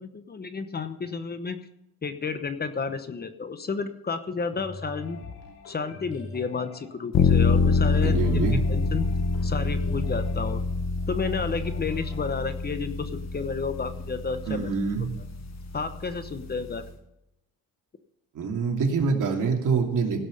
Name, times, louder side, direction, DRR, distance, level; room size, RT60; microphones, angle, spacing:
voice 1, 0.0-1.6 2.0-5.2 5.7-9.1 9.4-10.6 11.1-14.7 15.7-16.9, left 5 dB, 25° left, 10 dB, 1.0 m, -31 dB
sound 1, 4.5-12.4, left 3 dB, 85° left, 2.9 m, -43 dB
sound 2, 7.1-16.9, left 4 dB, 45° left, 1.7 m, -26 dB
voice 2, 8.0-8.6 14.5-15.1 18.3-20.2, right 5 dB, 60° right, 1 dB, 3.0 m, -25 dB
16.5 x 6.1 x 6.8 m, 0.83 s
cardioid pair, 120°, 36 cm